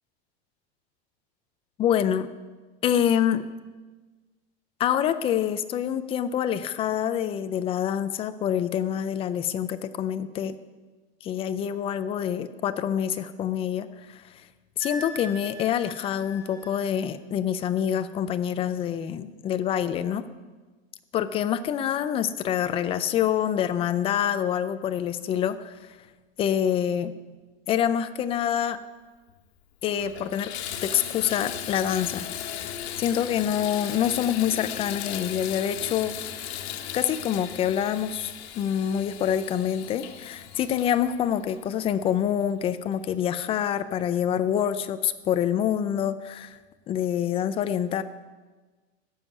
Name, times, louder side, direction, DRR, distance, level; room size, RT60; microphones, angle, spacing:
voice 1, 1.8-2.3 2.8-3.4 4.8-10.5 11.2-14.2 14.8-20.2 21.1-25.7 26.4-27.1 27.7-28.8 29.8-30.5 30.8-36.1 36.9-46.6 46.9-48.0, left 9 dB, 15° left, 11 dB, 0.4 m, -26 dB
Wind instrument woodwind instrument, 14.8-16.8, equal, 65° right, 3.3 m, -41 dB
Water tap faucet / Bathtub (filling or washing), 29.3-29.4 29.9-42.3 42.9-43.0 43.5-43.6, left 10 dB, 70° left, 1.5 m, -37 dB
14.5 x 7.3 x 9.5 m, 1.3 s
supercardioid pair, 155°, 33 cm